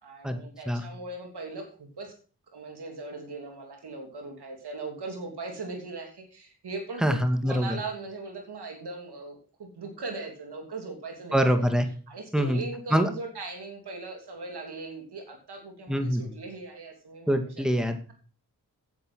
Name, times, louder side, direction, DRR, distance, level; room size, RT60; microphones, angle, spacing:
voice 1, 0.0-2.1 2.5-7.2 7.4-11.7 12.1-17.6, right 3 dB, 85° right, 3 dB, 3.0 m, -39 dB
voice 2, 7.0-7.8 11.3-11.9 12.3-12.6 12.9-13.1 15.9-16.2 17.3-18.1, equal, ahead, 7 dB, 2.1 m, -24 dB
9.4 x 8.0 x 6.2 m, 0.39 s
cardioid pair, 40°, 39 cm